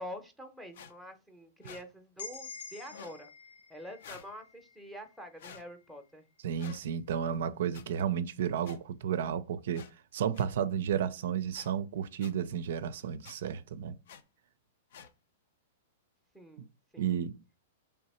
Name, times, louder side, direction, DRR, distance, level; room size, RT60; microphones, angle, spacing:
voice 1, 0.0-3.3 3.7-6.2 16.3-16.7 16.9-17.2, equal, ahead, 0.7 m, -46 dB
sound 1, 0.7-0.9 1.6-1.8 2.9-3.2 4.0-4.3 5.4-5.6 6.6-6.8 7.7-7.8 8.6-8.8 9.7-9.9 10.3-10.5 11.5-11.7 12.2-12.3 13.2-13.4 14.1-14.2 14.9-15.1, left 7 dB, 70° left, 0.6 m, -49 dB
sound 2, 2.2-6.0, left 5 dB, 90° left, 1.7 m, -49 dB
voice 2, 6.4-9.8 10.1-13.9 17.0-17.4, right 8 dB, 70° right, 0.4 m, -32 dB
3.4 x 2.8 x 4.2 m
hypercardioid pair, 145°, 0 cm